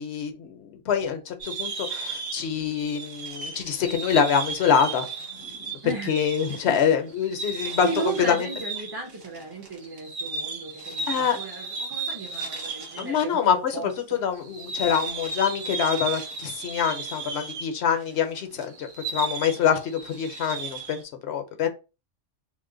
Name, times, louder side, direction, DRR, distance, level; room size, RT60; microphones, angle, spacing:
voice 1, 0.0-8.5 11.1-11.4 13.0-21.7, left 7 dB, 65° left, 7 dB, 0.8 m, -25 dB
sound 1, 1.4-13.3 13.5-13.6 14.3-21.0, right 4 dB, 80° right, 1.2 m, -35 dB
voice 2, 7.8-14.2, right 4 dB, 25° right, -2 dB, 0.6 m, -35 dB
3.0 x 2.1 x 3.7 m, 0.30 s
omnidirectional pair, 1.3 m